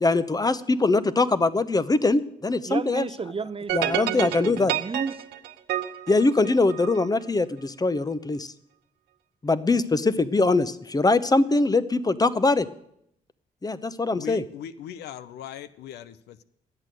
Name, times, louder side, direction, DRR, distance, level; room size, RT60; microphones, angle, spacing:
voice 1, 0.0-3.1 3.7-4.7 6.1-8.5 9.4-12.7 13.6-14.4, left 3 dB, 20° left, 16 dB, 0.8 m, -22 dB
voice 2, 2.6-5.2, right 5 dB, 35° right, 14 dB, 0.7 m, -32 dB
sound 1, 3.7-7.1, right 12 dB, 85° right, 0.8 m, -29 dB
voice 3, 14.1-16.4, left 9 dB, 80° left, 14 dB, 0.6 m, -39 dB
11.0 x 8.2 x 7.6 m, 0.74 s
supercardioid pair, 55°, 17 cm